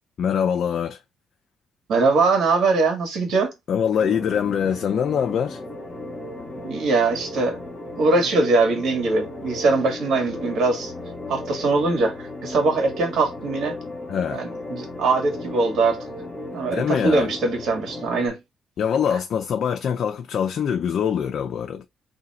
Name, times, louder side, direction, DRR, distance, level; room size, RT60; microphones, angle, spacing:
voice 1, 0.2-1.0 3.7-5.6 14.1-14.4 16.7-17.3 18.8-21.8, left 8 dB, 65° left, 0.4 m, -23 dB
voice 2, 1.9-3.5 6.6-7.6 8.0-10.9 11.3-13.7 14.3-16.0 16.5-18.4, right 3 dB, 70° right, 1.6 m, -22 dB
sound 1, 4.0-18.3, left 2 dB, 20° left, 1.0 m, -35 dB
2.8 x 2.7 x 4.1 m
cardioid pair, 90°, 0 cm